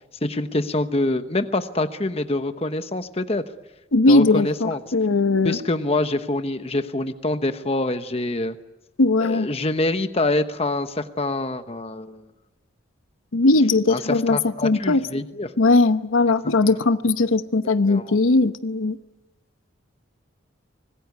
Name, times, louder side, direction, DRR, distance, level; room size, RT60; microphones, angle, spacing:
voice 1, 0.2-3.4 4.1-4.8 5.4-8.6 9.2-12.2 13.9-15.5 16.6-16.8 17.9-18.2, left 2 dB, 30° left, 9 dB, 1.0 m, -25 dB
voice 2, 3.9-5.6 9.0-9.5 13.3-15.0 15.6-19.0, left 3 dB, 80° left, 11 dB, 0.9 m, -19 dB
25.0 x 20.5 x 9.4 m, 1.0 s
head